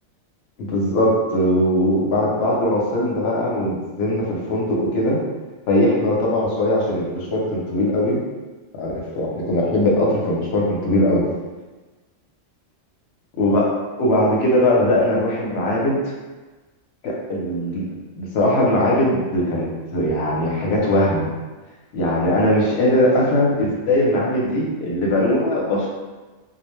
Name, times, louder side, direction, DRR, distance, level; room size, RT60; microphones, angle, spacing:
voice 1, 0.6-5.2 5.7-8.2 8.8-11.3 13.4-16.0 17.0-17.8 18.2-21.3 21.9-25.9, left 1 dB, 65° left, -3 dB, 0.8 m, -20 dB
2.2 x 2.1 x 3.0 m, 1.3 s
omnidirectional pair, 1.3 m